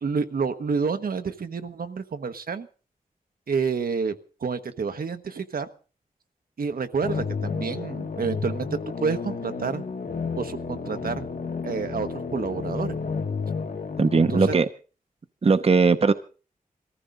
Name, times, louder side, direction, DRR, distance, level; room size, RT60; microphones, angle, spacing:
voice 1, 0.0-2.7 3.5-4.1 4.4-5.7 6.6-8.7 9.0-9.8 10.3-11.3 11.6-13.0 14.3-14.6, right 5 dB, 80° right, 1.2 m, -29 dB
sound 1, 7.0-14.5, left 5 dB, 70° left, 1.6 m, -31 dB
voice 2, 14.0-14.7 15.4-16.1, right 4 dB, 45° right, 0.7 m, -19 dB
21.5 x 14.5 x 3.8 m
wide cardioid pair, 90°, 15 cm